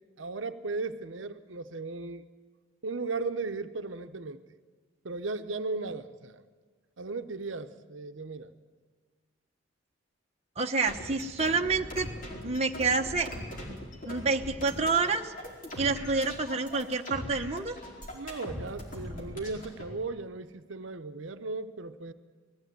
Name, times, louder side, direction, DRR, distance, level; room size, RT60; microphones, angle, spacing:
voice 1, 0.2-2.3 2.8-4.4 5.0-6.4 7.0-8.5 18.1-22.1, right 3 dB, 75° right, 9 dB, 0.9 m, -36 dB
voice 2, 10.6-12.1 12.4-13.3 13.7-13.8 14.1-15.3 15.8-17.8, right 4 dB, 35° right, 2 dB, 1.0 m, -28 dB
sound 1, 10.8-19.8, left 1 dB, 45° left, 4.7 m, -41 dB
20.0 x 15.0 x 9.3 m, 1.5 s
head